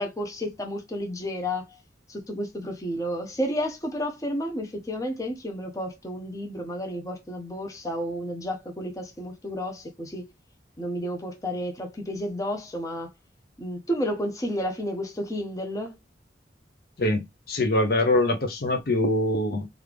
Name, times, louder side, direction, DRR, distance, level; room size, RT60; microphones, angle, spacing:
voice 1, 0.0-1.8 2.1-10.3 10.8-13.1 13.6-16.0, equal, 20° left, 0.6 m, -31 dB
voice 2, 17.0-19.7, left 1 dB, 55° left, 0.6 m, -24 dB
3.2 x 2.4 x 3.3 m
head